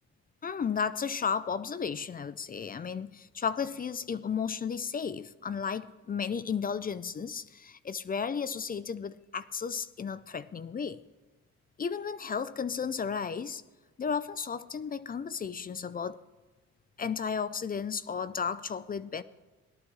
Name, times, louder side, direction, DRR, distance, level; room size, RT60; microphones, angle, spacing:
voice 1, 0.4-11.0 11.8-13.6 14.0-16.2 17.0-19.2, left 6 dB, 30° left, 0.5 m, -34 dB
18.0 x 11.5 x 3.1 m
cardioid pair, 90°, 30 cm